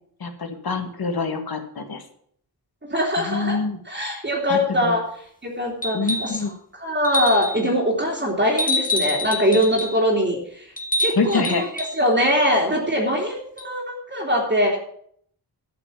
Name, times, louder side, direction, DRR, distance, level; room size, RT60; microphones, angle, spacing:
voice 1, 0.2-2.0 3.2-3.8 4.5-4.9 5.9-6.5 11.1-11.6, left 4 dB, 65° left, 6 dB, 1.7 m, -26 dB
voice 2, 2.9-3.6 3.8-5.0 5.4-6.4 6.7-10.6 11.0-14.8, equal, 25° right, -3 dB, 3.0 m, -22 dB
sound 1, 5.8-6.4 7.0-7.6 8.6-10.0 10.8-12.0 13.6-13.7, left 1 dB, 20° left, 1.8 m, -26 dB
12.0 x 5.8 x 8.4 m, 0.63 s
wide cardioid pair, 105°, 39 cm